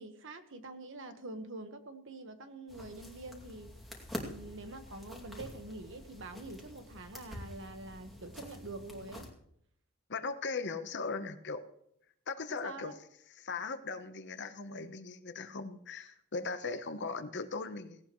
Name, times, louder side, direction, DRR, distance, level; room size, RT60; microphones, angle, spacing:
voice 1, 0.0-3.7 4.2-9.3 12.5-12.9, right 2 dB, 60° right, 8 dB, 1.5 m, -46 dB
sound 1, 2.7-9.3, left 1 dB, ahead, 2.6 m, -47 dB
voice 2, 10.1-11.6 12.3-12.9 13.4-18.0, left 4 dB, 55° left, 10 dB, 1.1 m, -38 dB
17.5 x 17.0 x 3.2 m, 0.73 s
head